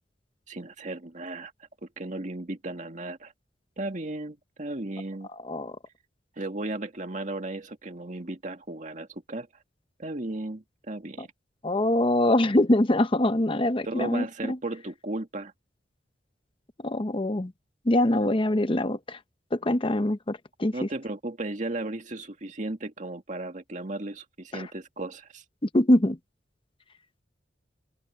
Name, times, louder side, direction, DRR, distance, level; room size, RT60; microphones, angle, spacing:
voice 1, 0.5-1.5 1.8-3.3 3.8-5.3 6.4-9.5 10.0-11.3 13.8-15.5 20.7-25.4, right 2 dB, 45° right, 2.0 m, -35 dB
voice 2, 11.6-14.6 16.8-17.5 17.9-19.2 19.5-20.7 24.5-24.6 25.7-26.2, left 1 dB, 30° left, 0.9 m, -23 dB
open air
head